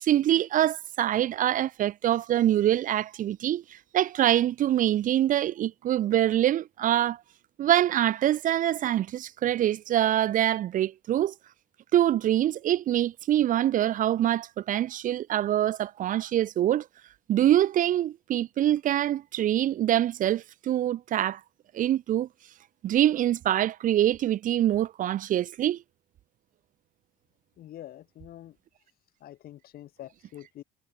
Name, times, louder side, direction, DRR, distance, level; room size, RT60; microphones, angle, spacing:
voice 1, 0.0-7.2 7.6-11.3 11.9-16.9 17.3-21.4 21.7-22.3 22.8-25.8, right 12 dB, 50° right, 0.5 m, -25 dB
voice 2, 27.6-28.6 29.2-30.6, left 13 dB, 65° left, 1.8 m, -45 dB
cardioid pair, 110°, 17 cm